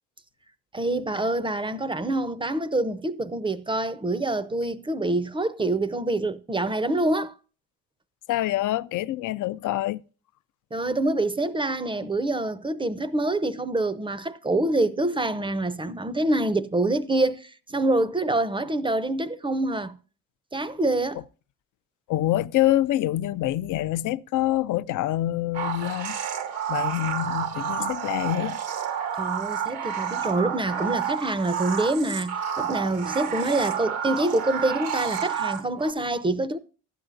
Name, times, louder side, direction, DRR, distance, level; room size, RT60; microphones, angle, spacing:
voice 1, 0.7-7.4 10.7-19.9 20.5-21.2 27.8-27.9 29.2-36.6, right 2 dB, 15° right, 0.5 m, -26 dB
voice 2, 8.3-10.0 22.1-26.2 26.7-28.6, left 14 dB, 60° left, 0.4 m, -26 dB
sound 1, 25.5-35.9, right 8 dB, 85° right, 1.1 m, -30 dB
12.0 x 9.1 x 2.5 m
supercardioid pair, 75°, 35 cm